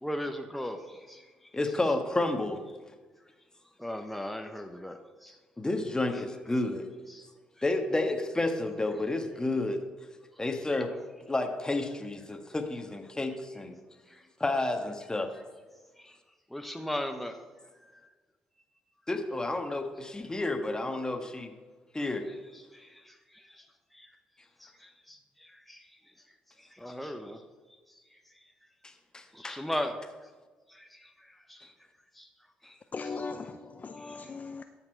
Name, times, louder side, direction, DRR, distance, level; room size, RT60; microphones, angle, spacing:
voice 1, 0.0-1.2 3.8-5.4 7.1-7.3 14.1-14.2 16.0-16.1 16.5-17.3 22.7-23.6 23.9-24.1 24.6-25.8 26.8-27.4 29.3-30.0 30.7-31.1 31.5-31.7 32.2-32.3 32.6-32.8, left 1 dB, ahead, 0.8 m, -38 dB
voice 2, 1.5-2.6 5.6-6.9 7.6-9.8 10.4-10.9 11.3-13.7 14.4-15.3 19.1-21.5 21.9-22.3 28.8-29.6, left 2 dB, 20° left, 1.4 m, -30 dB
voice 3, 32.9-34.6, left 4 dB, 40° left, 0.5 m, -38 dB
12.5 x 5.9 x 4.6 m
supercardioid pair, 55°, 4 cm